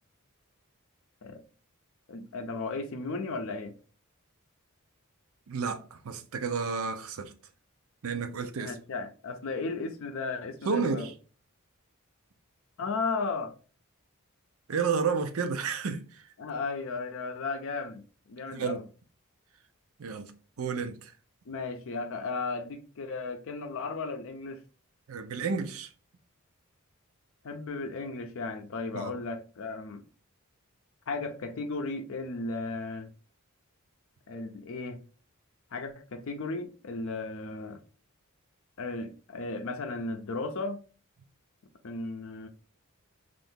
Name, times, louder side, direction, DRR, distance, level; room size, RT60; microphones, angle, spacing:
voice 1, 2.1-3.7 8.6-11.1 12.8-13.5 16.4-18.8 21.5-24.6 27.4-30.0 31.1-33.1 34.3-35.0 35.7-37.8 38.8-40.8 41.8-42.5, left 3 dB, 65° left, 0.5 m, -35 dB
voice 2, 5.5-7.3 8.0-8.7 10.7-11.1 14.7-16.3 18.5-18.8 20.0-20.3 20.6-21.1 25.1-25.9 28.9-29.1, right 5 dB, 70° right, 0.5 m, -31 dB
2.7 x 2.5 x 3.4 m
head